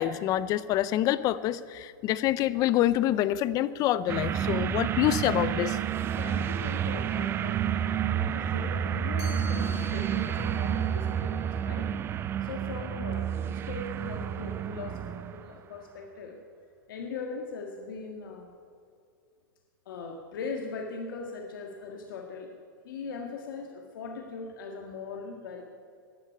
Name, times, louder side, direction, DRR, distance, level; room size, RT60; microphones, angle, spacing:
voice 1, 0.0-5.8, left 13 dB, 35° left, 17 dB, 0.5 m, -26 dB
sound 1, 4.1-15.5, right 9 dB, 20° right, 0.4 m, -30 dB
voice 2, 6.1-11.9 12.4-15.1 15.3-16.4 16.9-18.5 19.9-22.5 22.8-25.7, left 4 dB, 70° left, 3 dB, 1.7 m, -40 dB
Chime, 9.2-15.0, left 8 dB, 50° left, 5.0 m, -52 dB
12.0 x 11.0 x 9.8 m, 2.3 s
hypercardioid pair, 140°, 11 cm